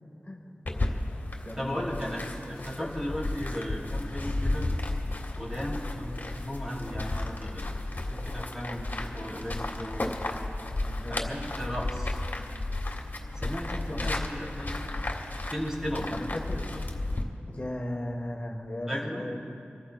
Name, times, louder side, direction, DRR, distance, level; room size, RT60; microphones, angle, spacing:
voice 1, 0.2-0.6 1.4-2.3 2.8-2.9 11.0-11.3 13.9-14.2 16.1-16.7 17.5-19.4, left 1 dB, 35° left, 0 dB, 1.5 m, -37 dB
sound 1, 0.7-17.2, left 2 dB, 50° left, 1.7 m, -33 dB
voice 2, 1.6-4.7 5.4-10.1 11.1-12.2 13.3-14.9 15.4-16.1 18.9-19.3, equal, 15° right, -3 dB, 3.1 m, -36 dB
28.5 x 14.0 x 2.4 m, 2.6 s
wide cardioid pair, 60°, 4 cm